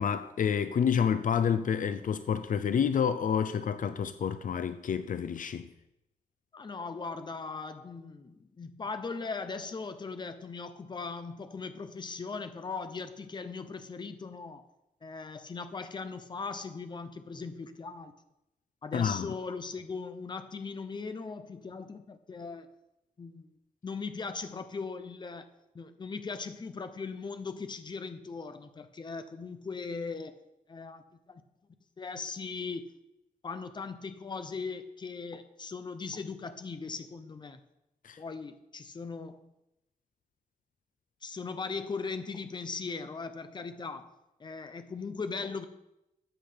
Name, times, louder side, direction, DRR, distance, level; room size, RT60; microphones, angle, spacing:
voice 1, 0.0-5.7 18.9-19.3 38.0-38.2, left 7 dB, 65° left, 0.6 m, -29 dB
voice 2, 6.5-14.7 15.0-18.1 18.8-22.7 23.2-23.5 23.8-25.5 25.7-30.4 30.7-31.0 31.3-31.4 32.0-32.8 33.4-37.6 38.2-39.5 41.2-44.1 44.4-45.7, left 4 dB, 30° left, 0.8 m, -39 dB
13.5 x 8.2 x 5.2 m
wide cardioid pair, 180°, 15 cm